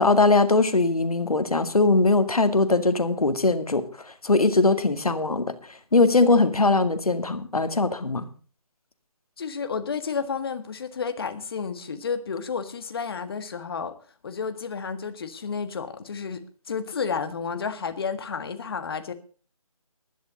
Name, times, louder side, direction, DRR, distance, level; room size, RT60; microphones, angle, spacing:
voice 1, 0.0-3.9 4.2-5.5 5.9-8.3, left 3 dB, 85° left, 2.0 m, -21 dB
voice 2, 9.4-13.9 14.2-19.1, left 5 dB, 40° left, 1.6 m, -31 dB
15.5 x 11.5 x 3.9 m
figure-of-eight pair, 160°, 18 cm